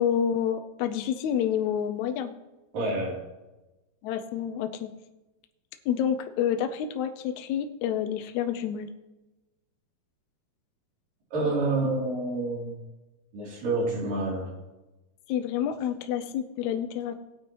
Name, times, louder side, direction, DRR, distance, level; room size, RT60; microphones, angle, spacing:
voice 1, 0.0-2.3 4.0-4.9 5.9-8.9 15.3-17.2, left 9 dB, 75° left, 7 dB, 1.8 m, -28 dB
voice 2, 2.7-3.2 11.3-12.8 13.3-14.5, right 2 dB, 80° right, -3 dB, 4.8 m, -28 dB
18.5 x 9.1 x 3.0 m, 1.1 s
omnidirectional pair, 3.9 m